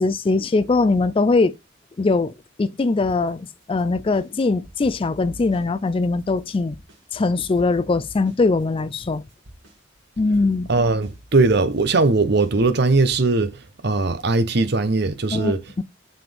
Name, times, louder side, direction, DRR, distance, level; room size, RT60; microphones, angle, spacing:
voice 1, 0.0-1.5 2.0-2.3 2.6-6.8 7.1-9.2 10.2-10.7 15.3-15.8, left 3 dB, 30° left, 0.4 m, -21 dB
sound 1, 2.8-4.3 4.6-7.0 7.4-13.2, equal, 75° right, 2.1 m, -47 dB
voice 2, 10.7-15.6, right 3 dB, 60° right, 0.8 m, -20 dB
7.1 x 5.8 x 3.4 m
head